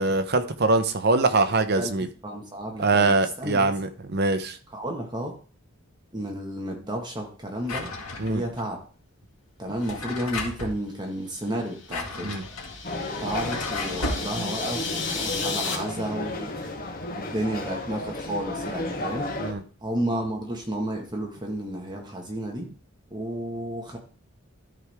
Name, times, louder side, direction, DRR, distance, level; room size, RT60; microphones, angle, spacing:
voice 1, 0.0-2.1 2.8-4.6 8.2-8.4 12.2-12.4 19.4-19.6, right 3 dB, 50° right, 9 dB, 0.8 m, -23 dB
voice 2, 1.8-3.7 4.7-5.4 6.1-7.9 8.3-8.8 9.6-12.4 13.2-16.5 17.1-19.3 19.8-22.7 23.1-24.0, right 1 dB, 20° right, 1 dB, 1.6 m, -32 dB
Drawer open or close, 7.6-8.6 9.7-10.8 11.6-14.3, left 2 dB, 90° left, 2.1 m, -34 dB
sound 1, 11.6-15.7, left 5 dB, 60° left, 2.3 m, -34 dB
sound 2, 12.8-19.5, left 2 dB, 45° left, 1.1 m, -33 dB
13.0 x 4.8 x 3.6 m, 0.40 s
head